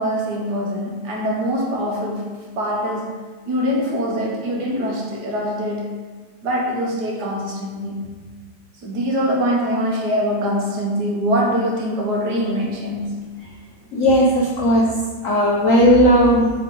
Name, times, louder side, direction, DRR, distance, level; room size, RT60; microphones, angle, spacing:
voice 1, 0.0-2.3 2.5-3.2 3.4-5.9 6.4-8.1 8.8-13.1, equal, 60° right, -2 dB, 1.5 m, -23 dB
voice 2, 13.9-15.0 15.2-16.5, equal, 65° left, -3 dB, 0.8 m, -15 dB
7.4 x 3.6 x 3.7 m, 1.4 s
omnidirectional pair, 2.2 m